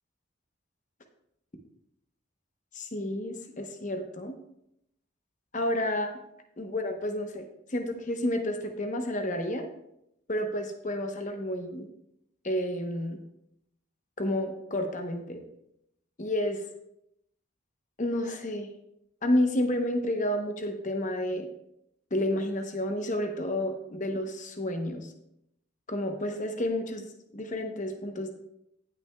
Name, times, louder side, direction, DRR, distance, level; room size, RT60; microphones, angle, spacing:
voice 1, 2.7-4.4 5.5-6.1 6.6-7.4 7.7-9.7 10.3-11.9 12.4-13.2 14.2-15.4 16.2-16.6 18.0-18.7 19.2-21.5 22.1-25.1 25.9-28.3, left 1 dB, 35° left, 4 dB, 0.9 m, -30 dB
17.5 x 6.0 x 2.3 m, 0.79 s
head